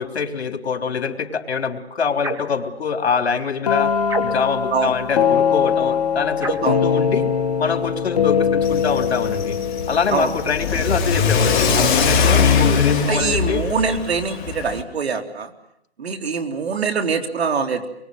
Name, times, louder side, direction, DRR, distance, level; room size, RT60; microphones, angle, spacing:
voice 1, 0.0-3.9 4.2-7.3 7.6-9.6 9.9-13.6, left 5 dB, 70° left, 6 dB, 3.7 m, -24 dB
sound 1, 2.2-2.6 4.1-4.6 6.4-6.8, right 3 dB, 10° right, 1.6 m, -28 dB
sound 2, 3.7-11.4, left 7 dB, 35° left, 1.8 m, -22 dB
Car / Accelerating revving vroom, 8.6-14.8, left 5 dB, 20° left, 2.8 m, -21 dB
voice 2, 13.1-15.5 16.0-17.9, right 5 dB, 70° right, 7 dB, 3.6 m, -23 dB
26.5 x 23.0 x 9.4 m, 0.76 s
hypercardioid pair, 160°, 33 cm